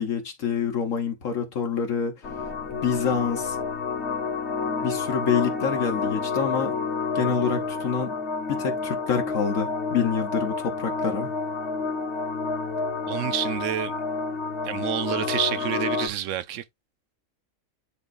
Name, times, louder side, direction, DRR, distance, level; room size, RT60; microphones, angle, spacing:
voice 1, 0.0-2.1 2.7-3.6 4.8-6.7 7.1-8.2 8.5-11.3, left 6 dB, 70° left, 1.5 m, -27 dB
sound 1, 2.2-16.1, left 4 dB, 55° left, 1.5 m, -29 dB
voice 2, 13.1-13.9 14.6-16.6, right 11 dB, 70° right, 0.9 m, -28 dB
10.5 x 3.6 x 2.5 m
omnidirectional pair, 1.4 m